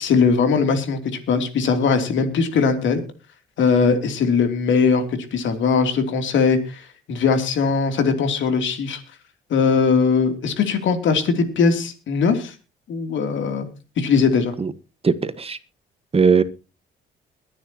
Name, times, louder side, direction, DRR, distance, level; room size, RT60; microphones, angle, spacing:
voice 1, 0.0-3.0 3.6-5.0 5.3-9.0 9.5-12.5 12.9-13.7 14.0-14.5, left 5 dB, 75° left, 7 dB, 3.1 m, -20 dB
voice 2, 15.0-15.6 16.1-16.4, right 5 dB, 30° right, 13 dB, 1.4 m, -18 dB
22.5 x 9.9 x 3.0 m, 0.32 s
cardioid pair, 90°, 20 cm